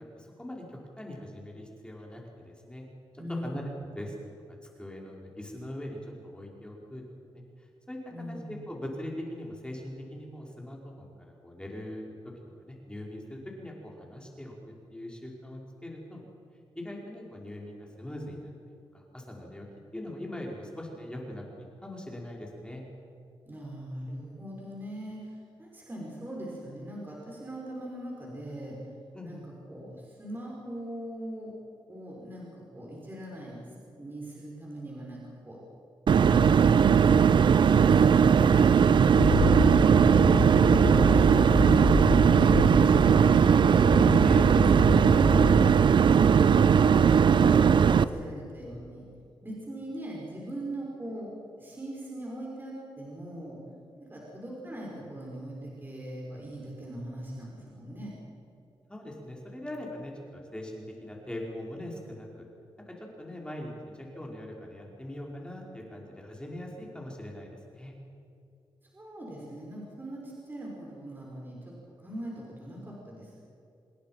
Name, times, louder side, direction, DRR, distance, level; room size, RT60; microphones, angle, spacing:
voice 1, 0.1-2.8 3.3-4.1 4.8-7.0 7.3-8.0 8.3-11.1 11.4-12.1 12.6-14.5 14.9-16.2 16.7-18.5 18.9-19.7 19.9-21.4 21.8-22.8 29.1-29.5 44.2-44.5 58.9-62.4 62.9-67.9, left 1 dB, 10° left, -1 dB, 5.0 m, -41 dB
voice 2, 3.2-3.7 8.1-8.6 23.4-28.8 29.2-31.6 31.9-33.7 34.0-35.6 36.1-39.4 40.7-41.5 41.9-43.8 44.4-46.8 47.2-49.1 49.4-53.6 54.0-58.1 68.9-73.3, right 1 dB, 20° right, -4 dB, 6.1 m, -40 dB
sound 1, 36.1-48.0, right 7 dB, 60° right, 0.7 m, -19 dB
sound 2, 39.1-43.3 43.6-45.7, left 2 dB, 50° left, 5.9 m, -28 dB
27.0 x 21.0 x 6.0 m, 2.6 s
cardioid pair, 85°, 9 cm